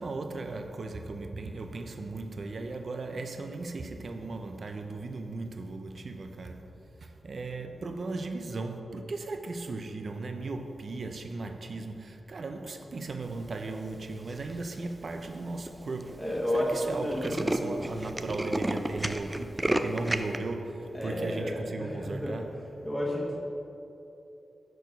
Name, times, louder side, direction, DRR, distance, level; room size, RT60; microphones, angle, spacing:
voice 1, 0.0-6.6 7.0-16.2 16.5-22.6, right 3 dB, 60° right, 0.6 m, -37 dB
Tools, 14.3-14.7 15.3-15.4 15.7-15.8 16.0-16.2 16.5-16.6 16.9-20.4, right 1 dB, 20° right, 0.4 m, -31 dB
voice 2, 16.2-17.9 20.9-22.4 22.8-23.4, equal, 5° left, 1.3 m, -32 dB
6.3 x 4.5 x 5.2 m
cardioid pair, 65°, 0 cm